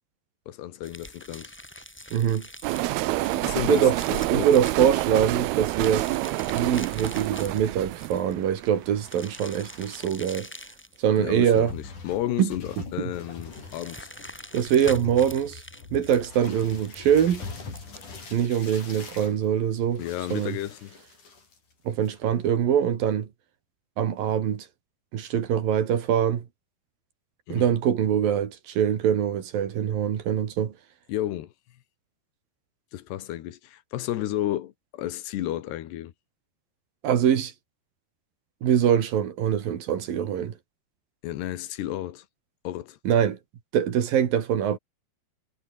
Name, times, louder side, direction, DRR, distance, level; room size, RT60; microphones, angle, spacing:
voice 1, 0.5-1.5 3.4-4.5 11.2-14.1 20.0-21.0 27.5-27.7 31.1-31.5 32.9-36.1 41.2-42.3 42.7-43.0, left 13 dB, 85° left, 3.6 m, -32 dB
sound 1, 0.8-18.3, left 1 dB, 5° left, 2.0 m, -45 dB
voice 2, 2.1-2.5 3.7-4.0 4.3-6.1 6.5-10.5 11.0-11.7 12.4-12.5 13.0-13.1 14.5-15.6 15.9-17.4 18.3-20.0 20.3-20.6 21.9-23.3 24.0-24.7 25.1-26.5 27.5-30.7 37.0-37.5 38.6-40.5 43.1-43.4 43.7-44.8, right 9 dB, 60° right, 3.7 m, -23 dB
sound 2, 2.6-9.7, right 18 dB, 80° right, 2.6 m, -28 dB
sound 3, 9.6-10.6 11.3-11.4 11.7-21.7 22.0-22.4, left 4 dB, 50° left, 7.5 m, -43 dB
omnidirectional pair, 4.7 m